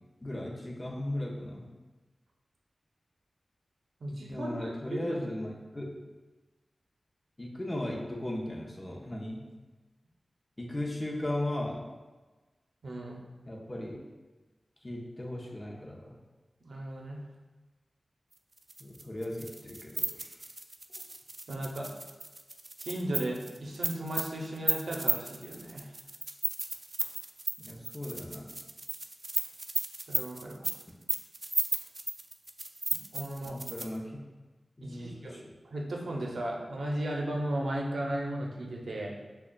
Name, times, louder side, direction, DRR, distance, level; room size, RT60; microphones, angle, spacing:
voice 1, 0.2-1.6 4.0-5.9 7.4-9.4 10.6-11.8 13.5-14.0 14.8-16.1 18.8-20.4 27.6-28.5 33.5-34.2 34.8-35.5, left 1 dB, 30° left, -2 dB, 0.7 m, -37 dB
voice 2, 4.0-5.2 12.8-13.2 16.6-17.2 21.5-21.9 22.8-25.9 30.1-30.7 33.1-33.6 34.8-39.1, right 1 dB, 85° right, -1 dB, 0.6 m, -36 dB
sound 1, 18.6-34.0, right 2 dB, 35° right, 0.3 m, -34 dB
6.2 x 2.3 x 2.2 m, 1.3 s
wide cardioid pair, 60°, 0 cm